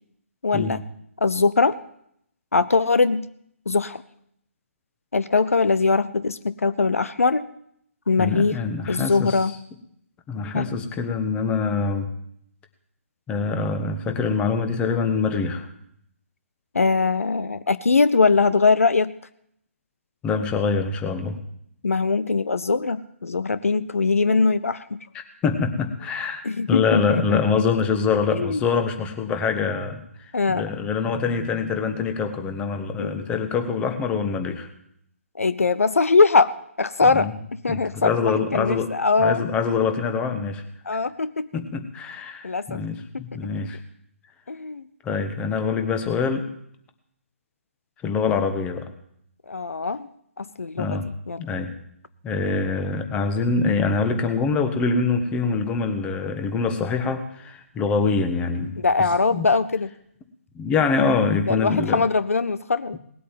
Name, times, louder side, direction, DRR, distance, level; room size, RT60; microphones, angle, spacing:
voice 1, 0.4-0.8 1.2-1.8 2.5-3.3 3.7-4.0 5.1-7.5 8.1-8.6 8.9-9.5 10.5-10.7 16.7-19.1 21.8-25.0 26.4-27.6 28.3-28.6 30.3-30.6 33.0-33.3 35.4-36.5 36.8-37.3 37.6-39.4 40.9-41.5 42.4-42.8 43.1-43.2 44.5-44.8 49.5-50.1 50.4-51.0 51.3-51.4 58.8-59.9 61.5-63.0, left 4 dB, 75° left, 15 dB, 0.7 m, -21 dB
voice 2, 8.2-9.4 10.3-12.1 13.3-15.7 20.2-21.4 25.4-26.4 26.7-30.0 30.5-34.7 37.1-37.3 37.7-38.9 39.2-40.6 41.5-43.8 45.0-46.5 48.0-48.9 50.8-51.1 51.4-51.7 52.2-58.8 59.3-59.5 60.5-62.0, left 5 dB, 15° left, 7 dB, 1.4 m, -24 dB
19.0 x 8.3 x 7.5 m, 0.71 s
figure-of-eight pair, 140°, 8 cm